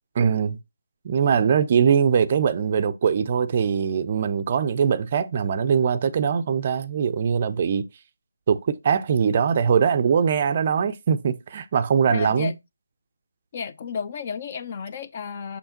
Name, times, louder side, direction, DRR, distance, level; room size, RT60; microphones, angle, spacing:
voice 1, 0.2-0.6 1.0-7.9 8.5-12.5, right 7 dB, 35° right, 0.4 m, -22 dB
voice 2, 12.1-12.5 13.5-15.6, left 6 dB, 35° left, 0.5 m, -32 dB
6.4 x 5.4 x 2.8 m
figure-of-eight pair, 155°, 0 cm